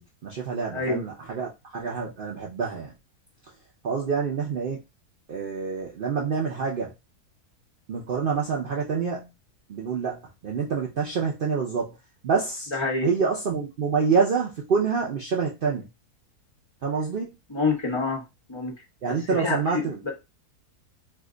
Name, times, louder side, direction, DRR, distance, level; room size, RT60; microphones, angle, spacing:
voice 1, 0.0-3.0 3.8-4.8 5.3-6.9 7.9-9.3 9.7-12.0 12.2-12.7 13.0-15.9 16.8-17.4 19.0-20.1, right 5 dB, 90° right, -2 dB, 0.4 m, -27 dB
voice 2, 12.7-13.1 17.5-18.2 18.5-18.7 19.1-20.1, left 3 dB, 25° left, -1 dB, 0.7 m, -27 dB
2.7 x 2.2 x 3.7 m, 0.24 s
omnidirectional pair, 1.7 m